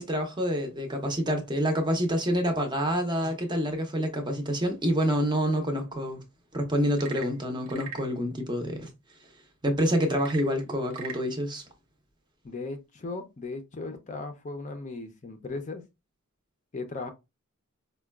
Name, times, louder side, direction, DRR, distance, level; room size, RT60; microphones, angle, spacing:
voice 1, 0.0-6.2 6.5-8.9 9.6-11.6, equal, 20° right, 0.6 m, -27 dB
Frog / Percussion / Wood, 6.8-8.1 10.1-11.3, right 6 dB, 75° right, 0.6 m, -41 dB
voice 2, 12.4-15.8 16.7-17.1, left 3 dB, 35° left, 0.5 m, -37 dB
4.7 x 2.2 x 2.2 m
head